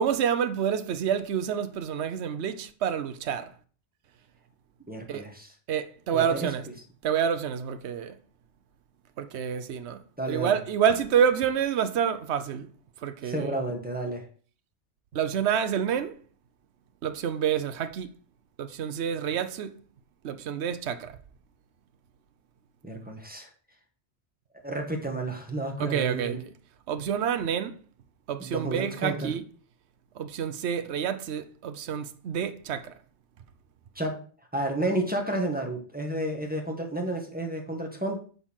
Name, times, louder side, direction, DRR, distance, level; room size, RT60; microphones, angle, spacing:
voice 1, 0.0-3.5 5.1-5.3 5.7-6.7 7.0-8.1 9.2-10.0 10.3-12.7 13.0-13.5 15.1-16.2 17.0-18.1 18.6-19.8 20.2-21.1 25.8-26.4 26.9-27.7 28.3-29.4 30.2-32.9, right 8 dB, 70° right, 1.0 m, -28 dB
voice 2, 4.9-5.5 6.1-6.5 10.2-10.6 13.2-14.3 22.8-23.5 24.6-26.4 28.4-29.3 34.0-34.2 34.5-38.2, right 1 dB, 10° right, 1.8 m, -31 dB
9.5 x 4.0 x 6.4 m
omnidirectional pair, 1.2 m